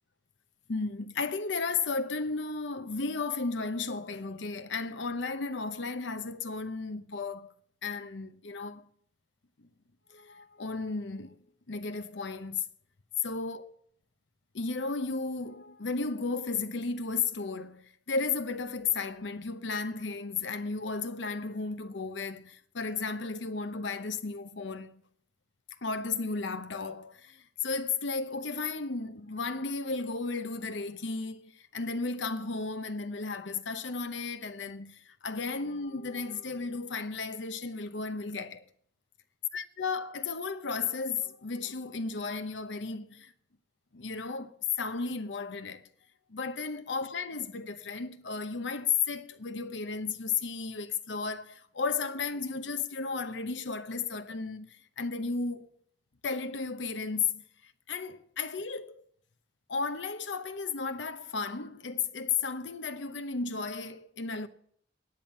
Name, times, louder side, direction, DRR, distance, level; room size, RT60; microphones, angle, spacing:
voice 1, 0.7-7.5 7.8-8.9 9.6-9.7 10.1-11.4 11.7-12.6 13.2-13.7 14.5-24.9 25.8-38.6 39.5-43.3 43.9-45.9 46.3-55.7 56.2-59.0 59.7-64.5, left 4 dB, 90° left, 0.9 m, -34 dB
9.9 x 8.8 x 7.3 m
head